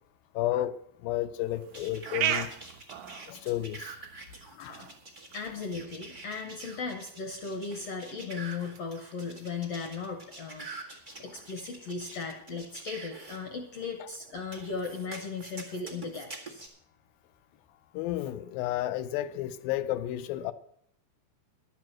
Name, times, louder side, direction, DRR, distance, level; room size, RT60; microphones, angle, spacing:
voice 1, 0.3-0.8 1.0-2.5 3.3-3.9 4.5-4.9 17.9-20.5, left 13 dB, 80° left, 2.3 m, -32 dB
sound 1, 1.4-15.5, right 10 dB, 70° right, 1.8 m, -41 dB
sound 2, 1.7-13.4 14.5-16.7, right 3 dB, 90° right, 0.4 m, -46 dB
voice 2, 5.3-10.9 11.2-16.7, left 4 dB, 65° left, 1.6 m, -37 dB
11.5 x 7.6 x 7.5 m
omnidirectional pair, 4.3 m